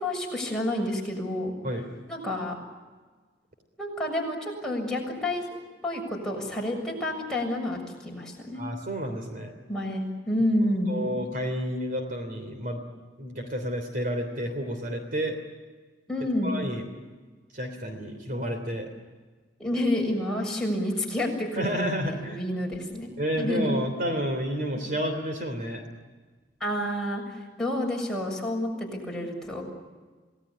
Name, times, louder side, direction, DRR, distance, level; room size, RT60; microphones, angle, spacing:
voice 1, 0.0-1.5 2.1-2.6 3.8-5.4 5.8-8.6 9.7-11.0 16.1-16.5 19.6-23.1 23.4-23.9 26.6-29.6, left 1 dB, 5° left, -2 dB, 7.0 m, -29 dB
voice 2, 8.5-9.5 10.9-12.8 13.2-15.4 16.4-16.8 17.5-18.9 21.5-22.4 23.2-25.8, equal, 50° right, 5 dB, 3.3 m, -30 dB
28.5 x 19.0 x 9.9 m, 1.4 s
head